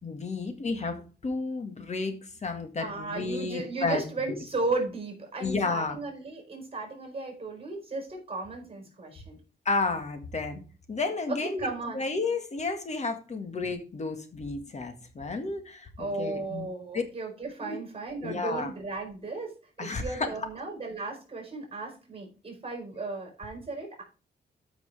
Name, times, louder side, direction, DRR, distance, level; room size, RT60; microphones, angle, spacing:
voice 1, 0.0-2.2 2.4-4.0 5.4-6.0 9.7-10.6 10.9-16.7 16.9-17.0 17.6-17.8 18.2-18.7 19.8-20.3, left 3 dB, 40° left, 6 dB, 1.8 m, -32 dB
voice 2, 2.8-9.4 11.3-12.0 16.0-24.0, right 3 dB, 30° right, 2 dB, 4.7 m, -35 dB
13.5 x 6.1 x 3.5 m, 0.35 s
wide cardioid pair, 115°, 18 cm